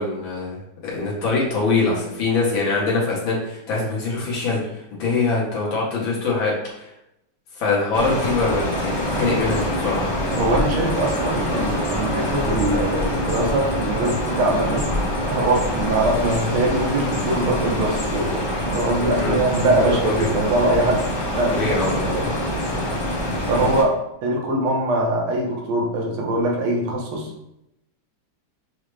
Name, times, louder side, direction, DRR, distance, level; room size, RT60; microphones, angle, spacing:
voice 1, 0.0-4.6 5.0-6.9 7.6-10.1 19.2-19.4 19.7-20.3 21.5-22.3 23.5-23.7, left 3 dB, 70° left, -6 dB, 1.8 m, -23 dB
sound 1, 7.9-23.8, left 1 dB, 25° left, 0.6 m, -25 dB
voice 2, 10.3-14.9 15.3-21.0 21.4-22.3 23.5-24.0 24.2-27.3, right 2 dB, 85° right, 0 dB, 1.7 m, -22 dB
6.2 x 2.1 x 3.2 m, 0.84 s
omnidirectional pair, 2.3 m